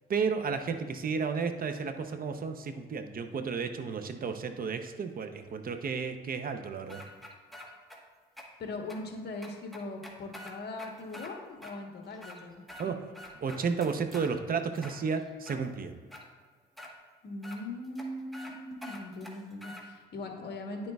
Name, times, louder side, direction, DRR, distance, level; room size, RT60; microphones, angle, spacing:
voice 1, 0.1-7.0 12.8-13.0 13.4-16.0, right 5 dB, 45° right, 7 dB, 0.7 m, -32 dB
sound 1, 6.9-8.0 8.4-8.5 8.9-9.0 9.4-11.3 11.6-11.7 12.1-12.9 13.1-14.3 14.8-15.6 16.1-16.2 16.8-16.9 17.4-17.6 18.0-18.1 18.3-18.5 18.8-19.8, left 1 dB, ahead, 1.2 m, -46 dB
voice 2, 8.6-12.6 17.2-20.9, left 2 dB, 55° left, 2 dB, 1.2 m, -40 dB
10.0 x 6.4 x 2.3 m, 1.5 s
cardioid pair, 90°, 20 cm